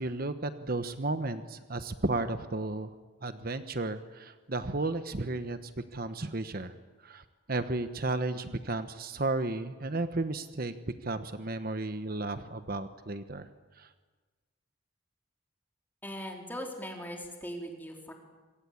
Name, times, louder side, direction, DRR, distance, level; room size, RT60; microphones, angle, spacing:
voice 1, 0.0-2.9 3.2-6.7 7.0-10.7 11.0-13.5 13.8-13.9, right 2 dB, 50° right, 10 dB, 1.1 m, -33 dB
voice 2, 16.0-18.1, equal, 10° left, 2 dB, 4.0 m, -40 dB
27.0 x 23.5 x 8.7 m, 1.3 s
head